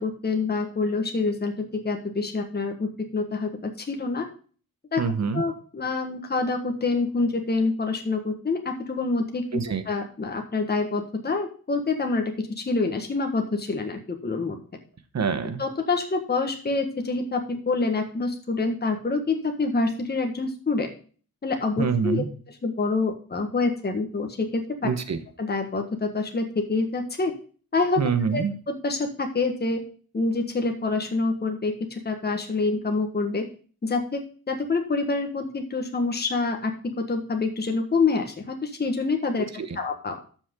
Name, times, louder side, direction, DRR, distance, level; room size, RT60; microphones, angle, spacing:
voice 1, 0.0-4.3 4.9-5.0 5.3-9.6 9.9-14.6 15.6-20.9 21.4-22.2 22.6-24.6 25.4-27.3 27.7-28.0 28.3-29.8 30.1-33.4 33.8-39.4 39.7-40.2, left 3 dB, 30° left, 3 dB, 1.5 m, -26 dB
voice 2, 5.0-5.4 9.5-9.8 15.1-15.6 21.8-22.3 24.8-25.2 28.0-28.5 39.6-39.8, right 6 dB, 50° right, 10 dB, 1.2 m, -25 dB
13.0 x 6.2 x 3.7 m, 0.40 s
wide cardioid pair, 155°, 35 cm